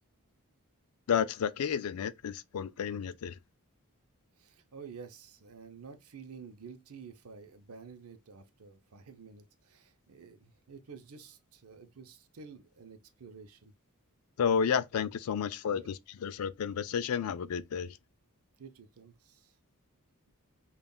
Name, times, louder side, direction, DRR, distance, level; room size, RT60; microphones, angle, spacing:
voice 1, 1.1-3.4 14.4-15.9 16.2-18.0, left 7 dB, 70° left, 0.3 m, -31 dB
voice 2, 4.4-13.7 15.7-15.9 18.6-19.5, right 5 dB, 70° right, 0.6 m, -50 dB
5.3 x 2.4 x 2.3 m
head